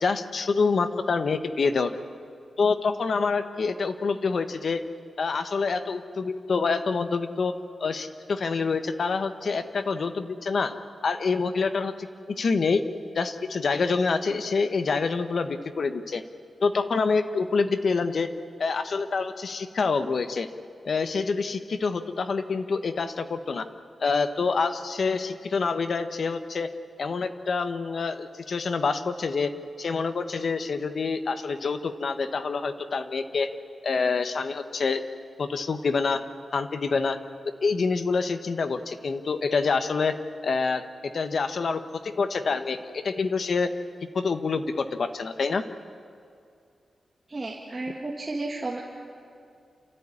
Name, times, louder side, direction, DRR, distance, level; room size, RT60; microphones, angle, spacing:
voice 1, 0.0-1.9 2.6-4.8 5.2-7.5 7.8-10.8 11.0-12.1 12.4-12.8 13.1-16.2 16.6-18.3 18.6-20.5 20.8-23.7 24.0-26.7 27.0-29.5 29.8-33.5 33.8-35.0 35.4-36.2 36.5-37.2 37.6-40.2 40.4-43.7 44.1-45.6, left 4 dB, 55° left, 9 dB, 1.2 m, -26 dB
voice 2, 47.3-48.8, right 2 dB, 25° right, -2 dB, 2.1 m, -32 dB
29.5 x 14.0 x 9.8 m, 2.4 s
wide cardioid pair, 135°, 0 cm